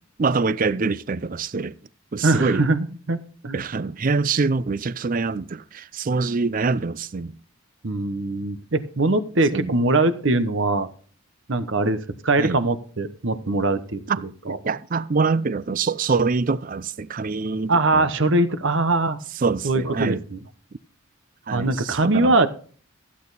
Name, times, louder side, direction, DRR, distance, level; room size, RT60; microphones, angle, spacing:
voice 1, 0.2-1.7 2.1-2.6 3.5-7.3 9.5-9.7 12.4-12.6 14.1-18.1 19.4-20.2 21.5-22.5, right 4 dB, 40° right, 0.4 m, -25 dB
voice 2, 2.2-3.6 7.8-10.9 11.5-12.0 12.2-14.0 14.5-14.6 17.7-19.2 19.6-20.4 21.5-22.5, right 2 dB, 60° right, 1.0 m, -22 dB
14.5 x 8.6 x 4.1 m
head